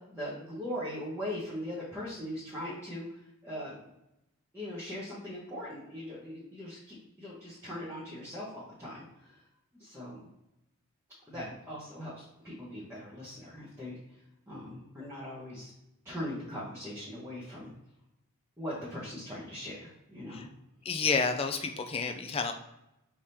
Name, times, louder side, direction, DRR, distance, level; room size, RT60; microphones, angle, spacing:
voice 1, 0.1-3.0 3.4-3.8 4.5-9.4 9.8-10.2 11.3-14.0 14.5-15.7 16.0-17.7 18.6-20.5, left 1 dB, 10° right, -9 dB, 1.1 m, -40 dB
voice 2, 20.9-22.5, left 5 dB, 25° left, 6 dB, 0.3 m, -30 dB
4.9 x 3.6 x 2.8 m, 0.88 s
head